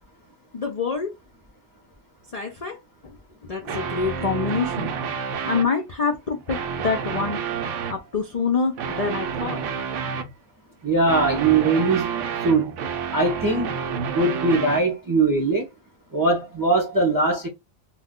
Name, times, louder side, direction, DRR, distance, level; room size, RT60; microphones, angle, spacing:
voice 1, 0.5-1.1 2.3-2.8 3.0-3.2 3.4-4.9 5.5-7.4 7.9-9.6, left 5 dB, 55° left, 0.4 m, -26 dB
sound 1, 3.6-5.7 6.3-8.0 8.8-10.3 11.1-14.8, right 6 dB, 85° right, 0.9 m, -29 dB
voice 2, 10.8-12.1 12.4-12.7 13.1-13.7 14.1-15.6 16.1-17.5, right 3 dB, 30° right, 0.4 m, -21 dB
2.3 x 2.2 x 3.6 m
omnidirectional pair, 1.2 m